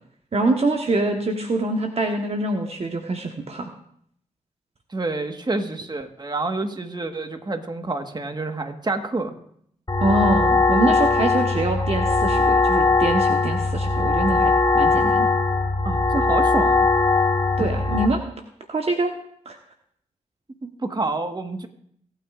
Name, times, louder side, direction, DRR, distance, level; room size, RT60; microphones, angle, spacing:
voice 1, 0.3-3.7 10.0-15.3 17.6-18.2 18.7-19.1 19.4-19.6, right 2 dB, 50° right, 3 dB, 1.2 m, -24 dB
voice 2, 4.9-9.3 15.8-16.9 20.6-21.7, right 2 dB, 30° right, 6 dB, 1.5 m, -28 dB
sound 1, 9.9-18.1, left 3 dB, 30° left, 1.8 m, -20 dB
26.0 x 9.1 x 2.5 m, 0.68 s
cardioid pair, 50°, 13 cm